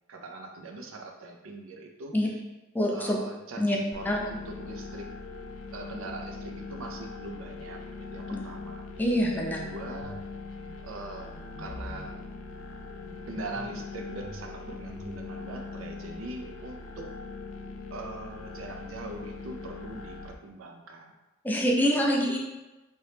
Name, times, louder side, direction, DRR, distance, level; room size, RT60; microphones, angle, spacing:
voice 1, 0.1-2.4 2.9-5.1 5.7-9.1 9.3-10.2 10.8-11.3 11.6-12.2 13.3-17.1 17.9-21.1, right 2 dB, 85° right, 2 dB, 0.5 m, -42 dB
voice 2, 2.7-3.2 3.6-3.8 4.0-4.2 8.3-8.4 9.0-9.6 21.4-22.4, equal, 10° left, -1 dB, 0.4 m, -25 dB
sound 1, 3.9-20.3, left 4 dB, 80° left, 0.4 m, -41 dB
sound 2, 10.0-10.3 10.7-10.8 11.3-12.1 13.0-13.8 14.2-15.2, equal, 50° left, 0.8 m, -45 dB
3.0 x 2.8 x 3.3 m, 1.1 s
head